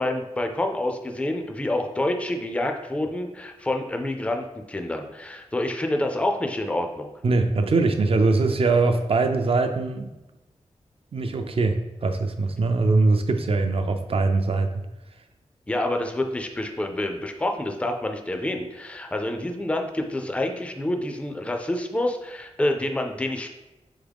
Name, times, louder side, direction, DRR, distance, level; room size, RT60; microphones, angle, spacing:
voice 1, 0.0-7.1 15.7-23.5, left 1 dB, 10° left, 4 dB, 0.4 m, -27 dB
voice 2, 7.2-10.1 11.1-14.7, right 3 dB, 50° right, 7 dB, 0.4 m, -22 dB
3.9 x 3.6 x 3.5 m, 0.99 s
wide cardioid pair, 110°, 12 cm